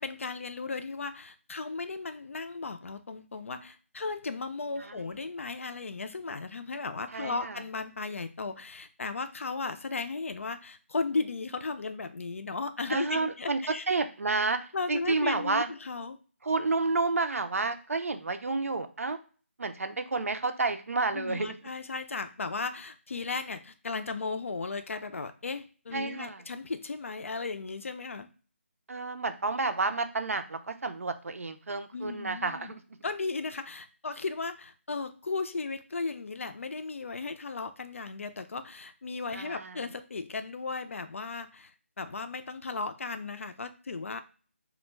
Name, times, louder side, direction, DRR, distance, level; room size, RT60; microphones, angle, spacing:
voice 1, 0.0-13.8 14.7-16.2 21.1-28.3 31.9-32.7 33.0-41.7 42.0-44.2, left 4 dB, 65° left, 10 dB, 0.4 m, -35 dB
voice 2, 7.1-7.5 12.9-13.6 13.9-14.6 14.9-15.7 16.4-19.2 19.6-21.5 25.9-26.4 28.9-32.8 39.3-39.8, right 3 dB, 80° right, 8 dB, 0.5 m, -30 dB
2.3 x 2.1 x 3.1 m, 0.38 s
figure-of-eight pair, 170°, 7 cm